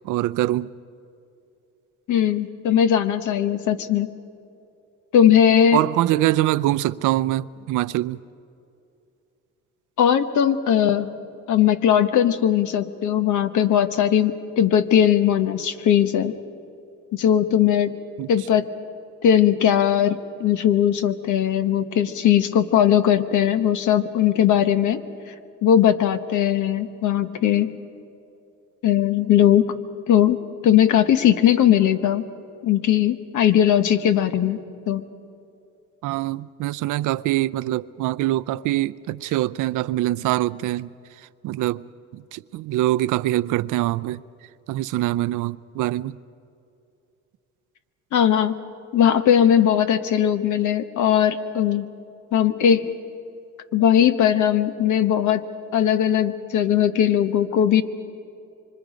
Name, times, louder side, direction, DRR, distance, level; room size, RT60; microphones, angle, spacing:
voice 1, 0.0-0.7 5.7-8.2 18.2-18.3 36.0-40.9 41.4-41.8 42.1-44.2 44.7-46.2, right 15 dB, 85° right, 0.5 m, -24 dB
voice 2, 2.1-4.1 5.1-5.8 10.0-11.1 11.5-16.3 17.1-17.9 18.3-18.7 19.2-25.0 25.6-27.8 28.8-29.8 30.1-32.3 32.6-34.6 34.9-35.0 48.1-48.5 48.9-51.9 52.3-52.9 53.7-55.4 55.7-57.8, left 9 dB, 75° left, 1.2 m, -19 dB
25.5 x 25.0 x 5.1 m
cardioid pair, 90°, 30 cm